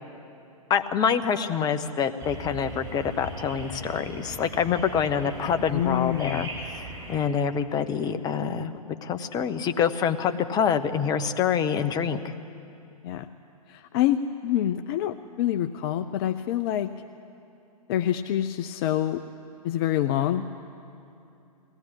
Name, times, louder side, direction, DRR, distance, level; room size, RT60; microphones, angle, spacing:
voice 1, 0.7-12.2, left 7 dB, 20° left, 9 dB, 1.0 m, -26 dB
sound 1, 2.2-7.2, right 2 dB, 20° right, 7.5 m, -39 dB
voice 2, 5.7-6.5 13.0-13.3 13.7-16.9 17.9-19.2 19.6-20.5, left 11 dB, 40° left, 9 dB, 0.7 m, -26 dB
21.5 x 17.5 x 10.0 m, 2.7 s
figure-of-eight pair, 120°, 20 cm